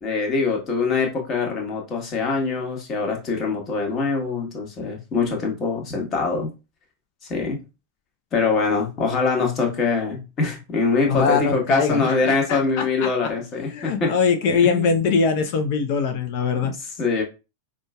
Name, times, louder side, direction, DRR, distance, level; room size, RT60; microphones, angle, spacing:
voice 1, 0.0-6.5 7.3-7.6 8.3-14.1 14.6-15.0 16.6-17.2, left 4 dB, 30° left, 1.2 m, -24 dB
voice 2, 11.1-13.1 13.7-16.7, left 5 dB, 45° left, 0.6 m, -22 dB
5.1 x 2.4 x 2.3 m
figure-of-eight pair, 90°, 0 cm